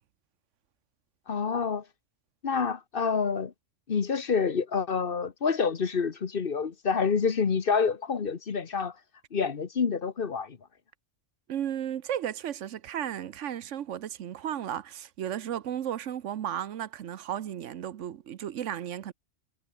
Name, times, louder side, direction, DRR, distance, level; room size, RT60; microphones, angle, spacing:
voice 1, 1.3-1.8 2.4-3.5 3.9-8.9 9.3-10.6, left 5 dB, 50° left, 1.3 m, -27 dB
voice 2, 11.5-19.1, right 10 dB, 80° right, 1.1 m, -34 dB
omnidirectional pair, 1.2 m